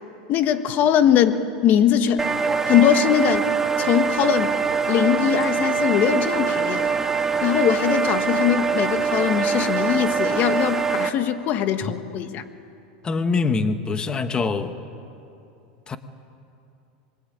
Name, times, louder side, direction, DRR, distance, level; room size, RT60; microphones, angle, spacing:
voice 1, 0.3-2.3 2.7-3.5 3.8-4.6 4.9-6.9 7.4-12.4, left 9 dB, 40° left, 9 dB, 1.5 m, -21 dB
sound 1, 2.2-11.1, right 5 dB, 10° right, 1.3 m, -23 dB
voice 2, 13.0-14.7 15.9-16.0, left 4 dB, 20° left, 9 dB, 1.3 m, -24 dB
27.0 x 22.5 x 8.8 m, 2.7 s
supercardioid pair, 140°, 5 cm